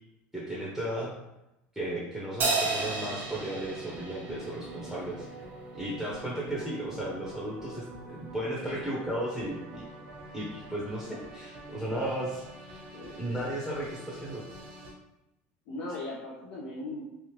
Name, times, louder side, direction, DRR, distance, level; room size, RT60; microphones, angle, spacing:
voice 1, 0.3-1.1 1.7-5.3 5.7-9.8 10.3-12.8 13.2-14.4, right 1 dB, ahead, -6 dB, 0.8 m, -35 dB
Crash cymbal, 2.4-5.1, right 3 dB, 35° right, 0.7 m, -32 dB
sound 1, 2.6-14.9, right 2 dB, 65° right, 1.1 m, -46 dB
voice 2, 15.7-17.0, left 2 dB, 65° left, -6 dB, 0.8 m, -38 dB
3.3 x 2.5 x 3.0 m, 0.92 s
supercardioid pair, 120°, 5 cm